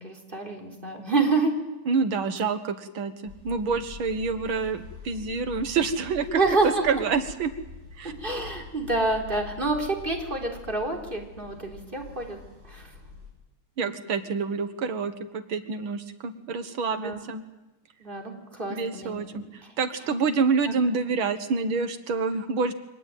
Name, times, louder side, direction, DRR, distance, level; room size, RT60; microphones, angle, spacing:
voice 1, 0.0-1.5 6.3-6.8 8.0-12.4 12.6-12.9 13.8-14.0 17.0-17.2 18.0-19.7 20.7-21.0, right 3 dB, 25° right, 1 dB, 4.1 m, -28 dB
voice 2, 1.9-6.4 6.8-7.5 8.0-8.1 13.8-17.4 18.7-19.4 19.8-22.7, right 5 dB, 90° right, 10 dB, 2.3 m, -27 dB
sound 1, 3.2-13.3, left 5 dB, 65° right, 7.8 m, -45 dB
24.5 x 19.0 x 9.2 m, 1.1 s
omnidirectional pair, 2.2 m